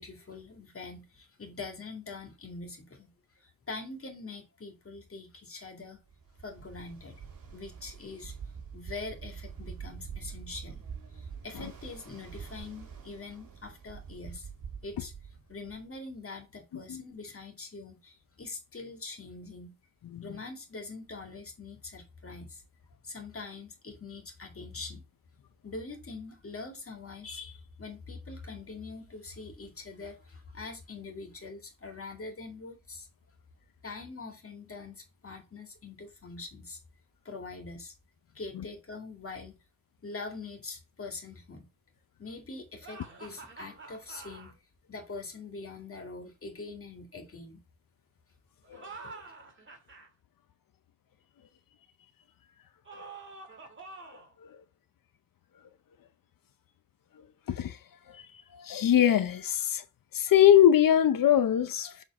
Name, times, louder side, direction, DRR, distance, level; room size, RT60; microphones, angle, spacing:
voice 1, 0.0-3.1 3.3-6.0 6.4-7.2 7.5-8.3 8.7-10.8 11.1-14.5 14.8-15.1 15.5-19.7 20.2-22.6 23.0-25.0 25.6-33.1 33.8-36.8 37.2-37.9 38.3-39.6 40.0-41.7 42.2-44.6 44.9-47.6, left 3 dB, 40° left, 2.2 m, -43 dB
Ocean, 6.1-16.0, right 6 dB, 85° right, 2.0 m, -45 dB
sound 1, 42.8-44.5 48.6-50.1 52.8-54.3, right 3 dB, 35° right, 1.8 m, -47 dB
voice 2, 58.5-59.8 60.1-62.0, left 10 dB, 85° left, 0.7 m, -23 dB
7.2 x 3.9 x 4.2 m
wide cardioid pair, 110°, 33 cm